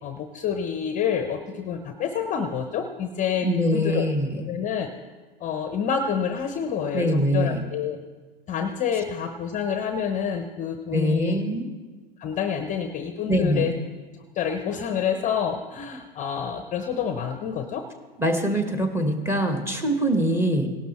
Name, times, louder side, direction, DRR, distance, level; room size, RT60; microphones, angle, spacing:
voice 1, 0.0-4.0 4.5-4.9 5.4-8.0 8.5-11.4 12.2-13.8 14.3-17.9, left 7 dB, 25° left, 7 dB, 0.7 m, -28 dB
voice 2, 3.4-4.4 6.9-7.6 10.9-11.7 13.3-13.7 18.2-20.7, equal, 10° right, 5 dB, 1.3 m, -23 dB
17.0 x 12.0 x 3.1 m, 1.4 s
figure-of-eight pair, 95°, 30 cm